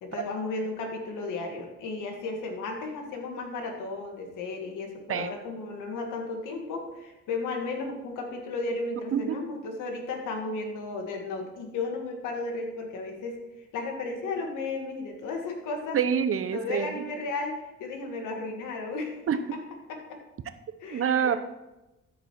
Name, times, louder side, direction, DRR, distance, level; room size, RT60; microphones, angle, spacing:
voice 1, 0.0-13.4 13.7-16.0 16.5-19.2 19.5-19.6 19.9-20.2 20.8-21.3, left 3 dB, 85° left, 2 dB, 1.8 m, -34 dB
voice 2, 15.9-17.0 19.3-19.4 20.9-21.4, right 8 dB, 45° right, 12 dB, 0.8 m, -26 dB
13.5 x 5.1 x 4.5 m, 1.0 s
cardioid pair, 90°, 30 cm